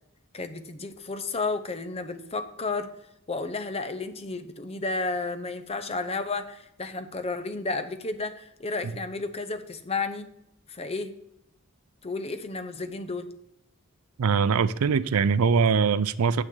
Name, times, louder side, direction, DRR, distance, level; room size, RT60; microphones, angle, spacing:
voice 1, 0.3-2.9 3.3-10.3 10.7-11.1 12.0-13.3, left 3 dB, 25° left, 0.6 m, -32 dB
voice 2, 14.2-16.4, right 5 dB, 75° right, 0.4 m, -22 dB
9.2 x 7.4 x 3.8 m
head